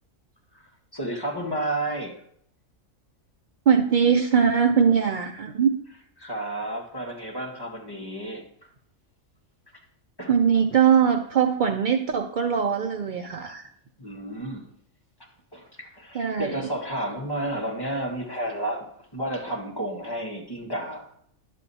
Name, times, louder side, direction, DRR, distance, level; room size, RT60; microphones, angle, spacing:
voice 1, 0.9-2.2 6.2-8.4 10.2-10.3 14.0-14.7 15.5-18.9 19.1-21.0, right 1 dB, 15° left, -2 dB, 1.5 m, -31 dB
voice 2, 3.7-5.8 10.3-13.7 16.1-16.7, right 7 dB, 80° right, 5 dB, 0.4 m, -21 dB
10.5 x 8.1 x 2.7 m, 0.69 s
omnidirectional pair, 1.4 m